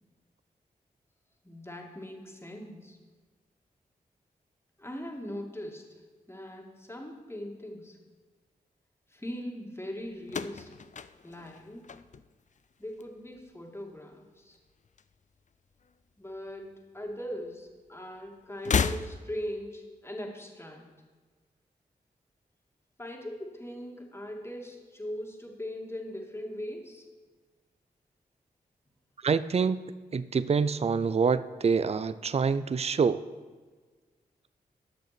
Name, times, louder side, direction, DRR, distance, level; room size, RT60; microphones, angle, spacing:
voice 1, 1.4-3.0 4.8-5.8 6.3-8.0 9.1-10.7 11.2-11.8 12.8-14.6 16.2-20.8 23.0-27.0, equal, 15° left, 1 dB, 2.4 m, -40 dB
sound 1, 10.2-12.6 12.9-13.5 14.5-15.6 15.8-15.9 17.1-17.2 18.5-19.6, left 6 dB, 50° left, 0.5 m, -33 dB
voice 2, 29.2-29.8 30.1-33.2, right 5 dB, 40° right, 15 dB, 0.5 m, -26 dB
11.5 x 6.5 x 6.1 m, 1.4 s
cardioid pair, 45°, 16 cm